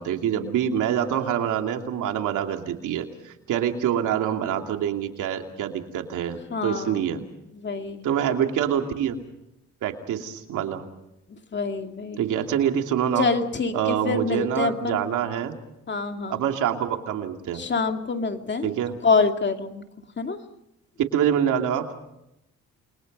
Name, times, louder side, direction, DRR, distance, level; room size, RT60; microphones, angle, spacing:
voice 1, 0.0-7.2 8.0-9.2 9.8-10.8 12.2-13.3 13.7-15.5 16.3-17.6 18.6-18.9 21.1-21.9, right 9 dB, 80° right, 4 dB, 2.8 m, -26 dB
voice 2, 6.5-7.1 7.5-8.1 11.3-12.2 13.2-15.0 15.9-16.4 17.5-18.7 19.0-19.8 20.2-20.4, left 4 dB, 35° left, 5 dB, 2.4 m, -26 dB
29.5 x 22.5 x 5.5 m, 0.84 s
cardioid pair, 90°, 30 cm